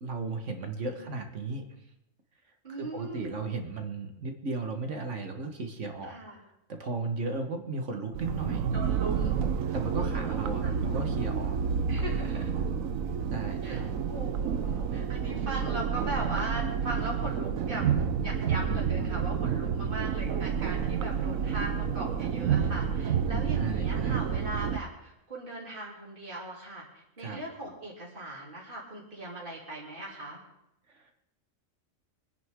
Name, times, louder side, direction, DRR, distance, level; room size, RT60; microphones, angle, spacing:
voice 1, 0.0-1.7 2.7-6.2 6.7-8.7 9.7-11.6 13.3-13.9 19.8-19.9 23.5-24.2 27.2-27.4 30.9-31.1, right 3 dB, 65° right, 5 dB, 1.8 m, -35 dB
voice 2, 2.6-3.4 6.0-6.4 8.7-9.4 10.0-10.4 10.6-10.8 11.9-12.5 13.6-17.9 18.2-30.4, right 1 dB, 40° right, -3 dB, 3.3 m, -39 dB
sound 1, 8.1-24.8, right 7 dB, 85° right, 1.2 m, -29 dB
24.5 x 10.0 x 3.7 m, 0.84 s
omnidirectional pair, 1.4 m